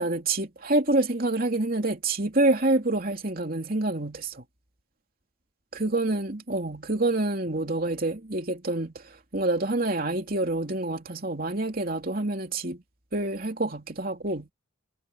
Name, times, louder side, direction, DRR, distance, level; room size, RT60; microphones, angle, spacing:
voice 1, 0.0-4.4 5.7-9.0 9.3-12.8 13.1-14.5, right 2 dB, 45° right, 3.1 m, -27 dB
head